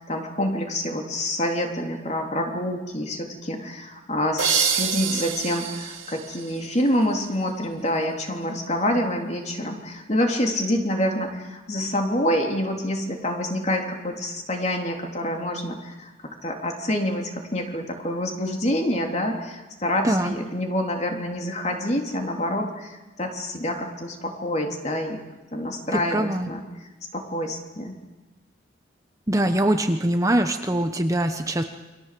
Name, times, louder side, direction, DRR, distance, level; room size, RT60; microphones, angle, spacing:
voice 1, 0.0-25.2 25.5-26.6 27.1-28.0, left 1 dB, 35° left, 3 dB, 3.4 m, -27 dB
sound 1, 4.4-7.1, right 8 dB, 85° right, 3.3 m, -27 dB
voice 2, 20.0-20.4 25.9-26.5 29.3-31.6, right 1 dB, 15° right, 6 dB, 1.0 m, -23 dB
28.5 x 23.5 x 7.7 m, 1.1 s
head